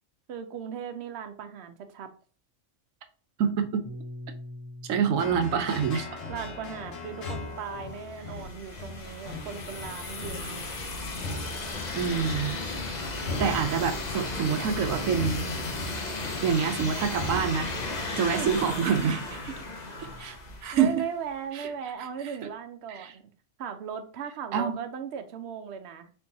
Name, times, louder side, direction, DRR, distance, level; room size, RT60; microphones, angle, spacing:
voice 1, 0.3-2.1 6.3-10.8 18.3-18.6 19.5-19.7 20.7-23.2 23.6-26.1, right 7 dB, 60° right, 0.9 m, -37 dB
voice 2, 3.4-3.9 4.8-6.2 11.9-12.6 13.4-15.5 16.4-17.7 18.2-19.4 20.2-20.4 20.6-21.0 21.5-21.7 22.9-23.1 24.5-24.8, right 7 dB, 85° right, 1.1 m, -26 dB
Piano, 3.8-8.3, left 1 dB, 5° right, 0.5 m, -46 dB
sound 1, 5.2-18.3, left 3 dB, 75° left, 1.3 m, -40 dB
sound 2, 7.5-21.2, left 2 dB, 40° left, 0.8 m, -35 dB
4.4 x 3.8 x 2.7 m
omnidirectional pair, 1.3 m